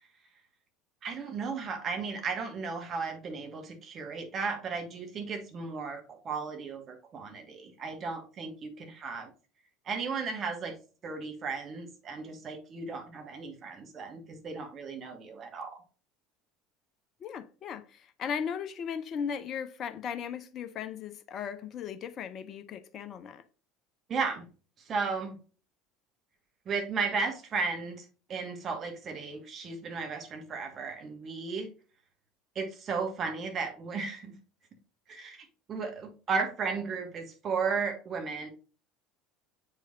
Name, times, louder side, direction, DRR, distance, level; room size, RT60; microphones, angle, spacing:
voice 1, 1.0-9.3 9.8-10.7 11.0-15.8 24.1-24.5 24.9-25.4 26.6-31.7 32.5-34.3 35.1-38.5, right 4 dB, 35° right, 1.7 m, -35 dB
voice 2, 17.2-23.4, left 7 dB, 40° left, 0.6 m, -37 dB
7.6 x 4.8 x 2.6 m
figure-of-eight pair, 70°, 0 cm